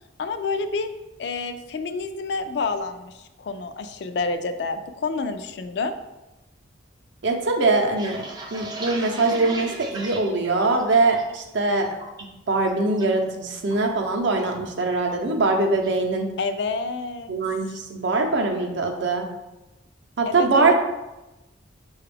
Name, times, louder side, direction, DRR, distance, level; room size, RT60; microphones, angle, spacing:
voice 1, 0.2-0.9 1.2-6.0 16.4-17.3 20.3-20.7, left 4 dB, 55° left, 8 dB, 0.3 m, -28 dB
voice 2, 7.2-8.2 8.5-11.9 12.5-16.3 17.3-19.3 20.2-20.7, right 3 dB, 65° right, 3 dB, 0.6 m, -22 dB
sound 1, 8.0-11.4 11.7-12.2 12.6-13.1 13.3-14.6 14.9-15.2 15.5-16.0, right 2 dB, 20° right, 0.4 m, -37 dB
6.7 x 2.3 x 3.3 m, 1.0 s
head